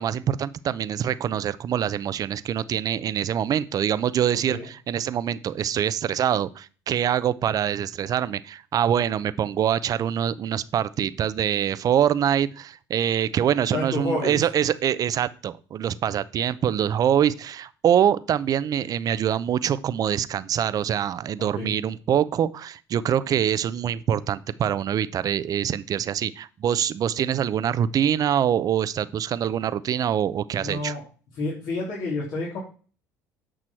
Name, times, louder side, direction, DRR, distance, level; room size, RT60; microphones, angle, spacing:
voice 1, 0.0-30.9, right 9 dB, 50° right, 16 dB, 0.6 m, -24 dB
voice 2, 13.7-14.4 21.4-21.7 30.5-31.0 31.3-32.6, left 2 dB, 65° left, -5 dB, 3.3 m, -30 dB
8.8 x 6.1 x 4.5 m, 0.38 s
supercardioid pair, 75°, 8 cm